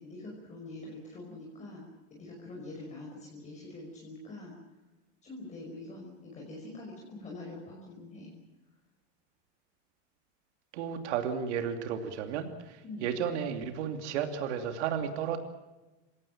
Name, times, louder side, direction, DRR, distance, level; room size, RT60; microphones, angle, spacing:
voice 1, 0.0-4.6 5.2-8.3 12.8-13.1, left 2 dB, 20° left, -1 dB, 5.5 m, -45 dB
voice 2, 10.7-15.4, right 8 dB, 90° right, 6 dB, 2.8 m, -33 dB
28.0 x 17.5 x 7.4 m, 1.1 s
supercardioid pair, 165°, 33 cm